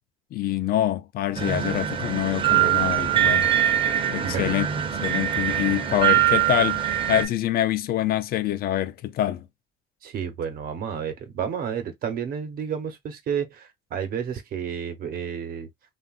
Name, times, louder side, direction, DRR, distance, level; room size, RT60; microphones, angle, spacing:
voice 1, 0.3-3.5 4.1-4.7 5.0-9.4, left 12 dB, 60° left, 0.5 m, -25 dB
sound 1, 1.4-7.2, right 11 dB, 30° right, 0.7 m, -23 dB
voice 2, 4.2-4.6 10.0-15.7, right 7 dB, 60° right, 0.9 m, -31 dB
3.4 x 2.4 x 2.4 m
cardioid pair, 110°, 17 cm